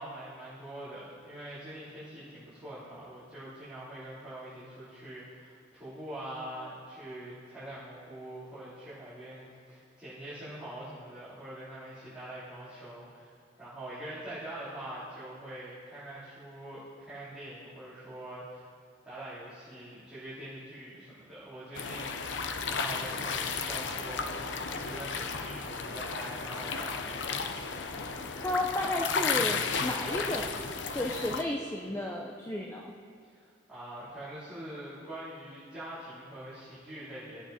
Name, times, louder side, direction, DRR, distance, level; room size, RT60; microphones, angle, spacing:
voice 1, 0.0-18.6 19.0-27.2 33.2-37.4, right 1 dB, 5° right, -16 dB, 3.7 m, -44 dB
sound 1, 21.7-31.4, left 5 dB, 80° left, 0.7 m, -34 dB
voice 2, 28.1-30.5 30.9-32.9, left 1 dB, 15° left, -1 dB, 0.7 m, -33 dB
17.0 x 8.6 x 4.3 m, 2.2 s
head